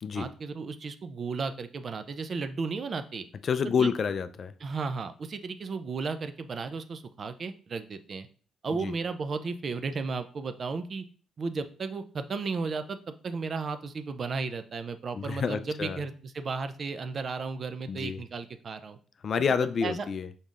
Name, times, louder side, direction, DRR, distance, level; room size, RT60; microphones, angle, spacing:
voice 1, 0.1-3.3 3.8-3.9 4.6-8.3 8.6-11.0 11.4-19.0 19.6-20.1, right 4 dB, 45° right, 10 dB, 0.5 m, -34 dB
voice 2, 3.4-4.5 8.8-8.9 15.1-16.0 17.9-18.2 19.2-20.3, left 6 dB, 50° left, 12 dB, 0.4 m, -28 dB
5.5 x 3.8 x 2.4 m, 0.42 s
cardioid pair, 90°, 0 cm